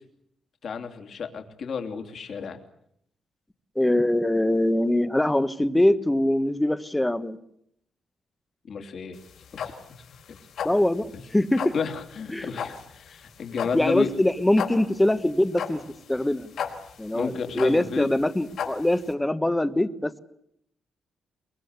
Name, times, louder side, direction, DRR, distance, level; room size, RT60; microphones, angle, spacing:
voice 1, 0.6-2.6 8.7-9.2 9.6-9.7 10.3-10.4 11.7-14.1 17.1-18.1, left 6 dB, 50° left, 6 dB, 3.1 m, -31 dB
voice 2, 3.7-7.4 10.6-11.7 12.3-12.5 13.7-15.8 16.1-16.5 17.0-20.2, left 1 dB, 10° left, 11 dB, 1.2 m, -23 dB
sound 1, 9.1-19.1, left 7 dB, 70° left, 4.5 m, -35 dB
23.5 x 23.0 x 8.2 m, 0.72 s
wide cardioid pair, 150°, 0 cm